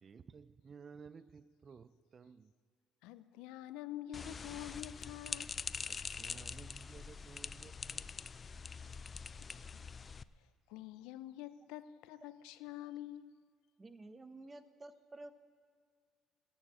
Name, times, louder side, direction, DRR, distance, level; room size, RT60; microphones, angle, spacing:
voice 1, 0.0-2.5 5.9-8.3, right 6 dB, 40° right, 0.4 m, -55 dB
voice 2, 3.0-5.5 9.0-9.2 9.7-9.8 10.7-13.5, left 12 dB, 80° left, 0.5 m, -47 dB
sound 1, 4.1-10.2, left 5 dB, 35° left, 0.4 m, -44 dB
voice 3, 13.8-15.3, right 2 dB, 20° right, 0.9 m, -51 dB
14.5 x 7.1 x 8.7 m
supercardioid pair, 85°, 0 cm